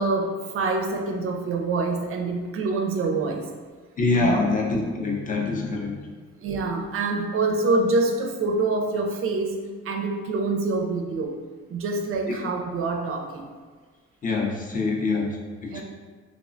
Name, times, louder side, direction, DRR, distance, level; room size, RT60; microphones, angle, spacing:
voice 1, 0.0-3.5 4.2-4.5 6.4-9.6 9.8-11.4 11.7-13.5 14.9-15.0 15.7-15.8, right 3 dB, 45° right, 3 dB, 0.4 m, -26 dB
voice 2, 4.0-6.1 12.3-12.4 14.2-15.8, left 3 dB, 25° left, -1 dB, 0.5 m, -25 dB
3.1 x 2.0 x 2.5 m, 1.5 s
cardioid pair, 90°, 30 cm